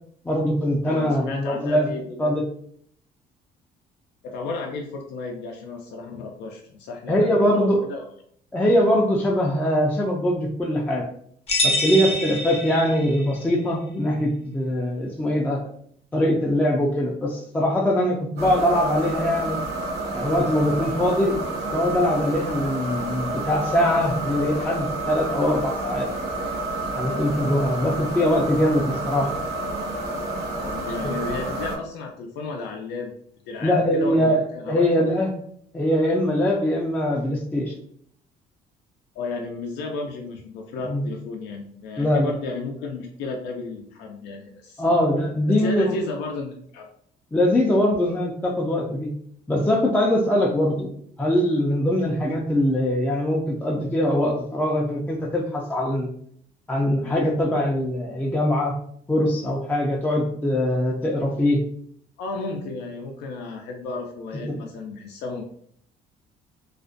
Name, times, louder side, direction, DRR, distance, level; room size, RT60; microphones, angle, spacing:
voice 1, 0.2-1.9 2.2-2.4 7.1-7.8 8.5-11.0 11.6-15.6 16.1-19.6 20.1-21.4 21.7-26.1 27.0-29.3 33.6-35.3 35.7-37.7 40.9-41.0 42.0-42.3 44.8-46.0 47.3-49.1 49.5-50.9 51.2-56.1 56.7-58.7 59.1-61.6 64.5-64.6, left 1 dB, 10° left, -1 dB, 0.3 m, -22 dB
voice 2, 0.8-2.3 4.2-8.1 30.6-33.1 33.5-34.9 39.1-44.8 45.6-46.9 62.2-65.4, left 3 dB, 85° left, 1 dB, 0.4 m, -33 dB
sound 1, 11.5-13.3, left 1 dB, 35° left, 0.7 m, -25 dB
sound 2, 18.4-31.8, right 2 dB, 75° right, 0.7 m, -29 dB
2.4 x 2.1 x 2.5 m, 0.64 s
cardioid pair, 110°, 17 cm